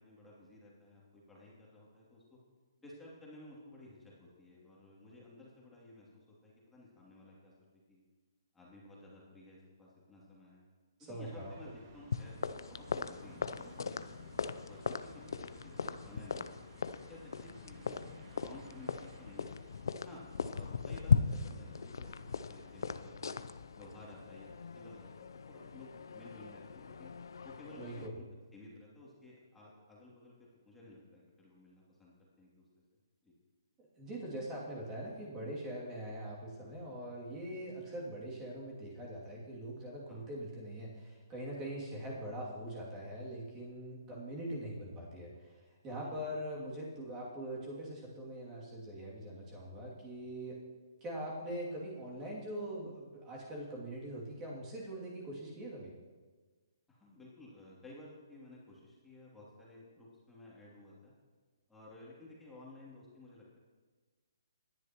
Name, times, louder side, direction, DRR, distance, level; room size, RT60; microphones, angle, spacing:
voice 1, 0.0-2.4 2.8-7.5 7.9-8.0 8.5-10.6 11.0-14.3 14.7-16.6 17.1-19.6 20.0-23.4 23.8-27.1 27.4-28.2 28.5-32.8 33.2-33.3 40.1-40.3 46.0-46.3 56.9-61.1 61.7-63.6, left 2 dB, 5° left, -6 dB, 2.7 m, -55 dB
voice 2, 11.1-11.5 27.8-28.1 33.9-50.6 51.0-55.9, right 1 dB, 20° right, -4 dB, 2.6 m, -42 dB
sound 1, 11.2-22.9, right 3 dB, 35° right, 2.1 m, -59 dB
sound 2, 12.1-28.1, left 5 dB, 75° left, 0.6 m, -38 dB
20.0 x 10.5 x 3.0 m, 1.4 s
hypercardioid pair, 150°, 2 cm